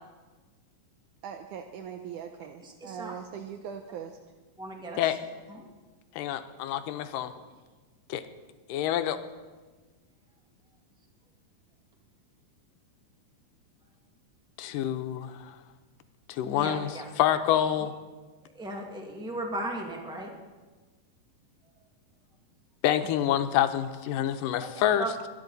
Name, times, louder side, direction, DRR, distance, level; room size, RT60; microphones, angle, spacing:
voice 1, 1.2-4.2, right 8 dB, 75° right, 5 dB, 2.1 m, -40 dB
voice 2, 2.6-3.1 4.6-5.2 5.5-5.7 16.4-17.0 18.5-20.3 24.6-25.1, right 1 dB, 5° right, 0 dB, 0.5 m, -36 dB
voice 3, 6.2-7.3 8.1-8.2 8.7-9.2 14.6-15.5 16.3-16.9 17.2-17.9 22.8-25.1, left 11 dB, 85° left, 9 dB, 2.4 m, -27 dB
22.5 x 11.0 x 4.0 m, 1.3 s
omnidirectional pair, 3.8 m